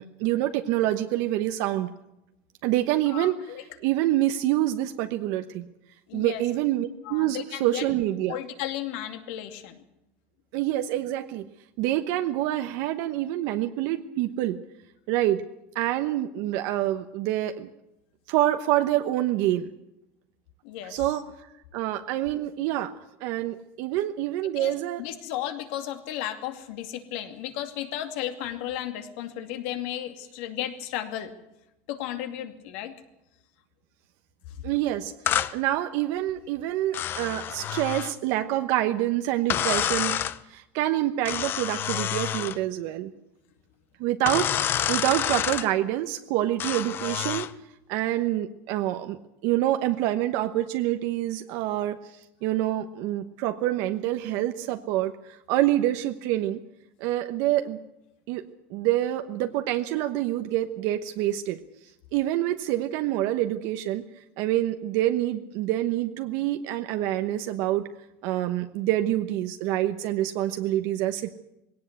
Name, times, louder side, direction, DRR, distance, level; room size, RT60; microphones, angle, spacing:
voice 1, 0.0-1.9 2.6-3.4 3.8-5.7 6.1-8.4 10.5-11.5 11.8-14.6 15.1-15.4 15.7-17.7 18.3-19.7 20.8-21.2 21.7-22.9 23.2-25.0 34.6-43.1 44.0-47.5 47.9-49.2 49.4-56.6 57.0-57.8 58.3-58.4 58.7-61.6 62.1-64.0 64.4-67.8 68.2-71.3, right 14 dB, 60° right, 7 dB, 1.1 m, -26 dB
voice 2, 3.1-3.6 6.1-6.4 7.0-7.9 8.3-9.8 20.6-21.0 24.6-31.3 31.9-32.9, left 12 dB, 70° left, 7 dB, 2.4 m, -34 dB
sound 1, 35.3-35.5 36.9-38.1 39.5-40.4 41.2-42.6 44.3-45.7 46.6-47.5, left 10 dB, 35° left, 0.7 m, -28 dB
19.5 x 17.5 x 8.1 m, 0.89 s
supercardioid pair, 150°, 7 cm